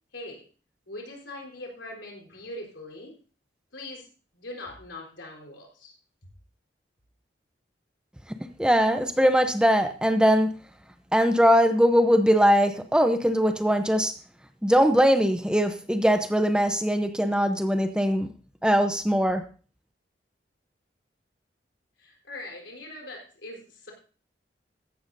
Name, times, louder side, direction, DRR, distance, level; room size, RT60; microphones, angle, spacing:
voice 1, 0.1-0.4 0.9-3.2 3.7-4.1 4.3-6.0 22.0-23.9, left 1 dB, 90° left, 0 dB, 4.1 m, -41 dB
voice 2, 8.6-10.5 11.1-14.1 14.6-18.3 18.6-19.4, equal, 5° right, 8 dB, 0.7 m, -21 dB
14.5 x 11.5 x 2.7 m, 0.37 s
head